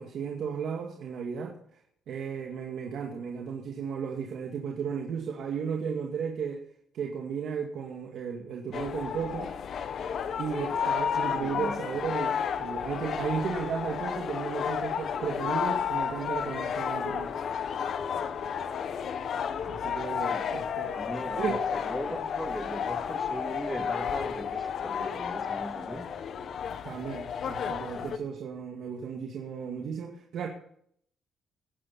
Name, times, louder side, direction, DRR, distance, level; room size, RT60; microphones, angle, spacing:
voice 1, 0.0-1.6 2.1-6.6 6.9-9.5 10.4-17.3 19.7-20.9 21.4-21.6 26.8-30.5, right 6 dB, 70° right, 1 dB, 2.1 m, -34 dB
sound 1, 8.7-28.2, left 7 dB, 60° left, 1.3 m, -32 dB
voice 2, 11.4-11.8 20.3-26.1, right 1 dB, 5° right, 6 dB, 2.3 m, -39 dB
19.0 x 10.0 x 4.2 m, 0.64 s
cardioid pair, 90°, 0 cm